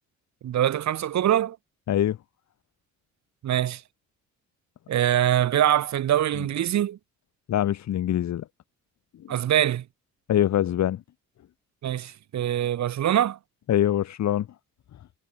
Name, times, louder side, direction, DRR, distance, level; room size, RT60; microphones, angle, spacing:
voice 1, 0.4-1.6 3.4-3.8 4.9-7.0 9.3-9.8 11.8-13.4, right 11 dB, 65° right, 2.0 m, -23 dB
voice 2, 7.5-8.4 10.3-11.0 13.7-14.5, left 11 dB, 65° left, 1.9 m, -23 dB
cardioid pair, 90°, 30 cm